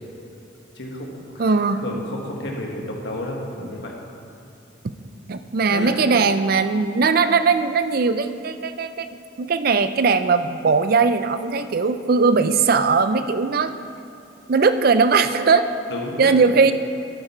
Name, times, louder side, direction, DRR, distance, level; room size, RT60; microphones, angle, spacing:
voice 1, 0.7-3.9 5.7-5.9 15.9-16.3, left 1 dB, 55° left, -1 dB, 1.6 m, -32 dB
voice 2, 1.4-1.8 5.3-9.1 9.4-13.7 14.5-15.7 16.2-16.7, right 4 dB, 45° right, 10 dB, 0.4 m, -19 dB
12.0 x 8.8 x 4.4 m, 2.8 s
head